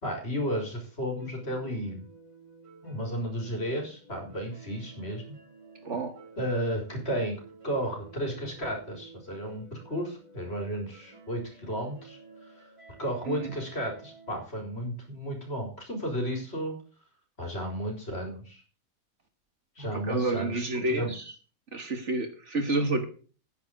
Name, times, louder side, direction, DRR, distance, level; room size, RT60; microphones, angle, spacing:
voice 1, 0.0-2.0 2.8-5.4 6.4-12.2 13.0-16.7 17.4-18.6 19.8-21.1, equal, 45° left, 2 dB, 4.3 m, -33 dB
sound 1, 1.2-14.4, right 3 dB, 20° right, 2.2 m, -53 dB
voice 2, 19.9-21.2 21.7-23.0, right 2 dB, 55° right, 6 dB, 1.7 m, -29 dB
9.9 x 9.5 x 5.2 m, 0.38 s
omnidirectional pair, 1.5 m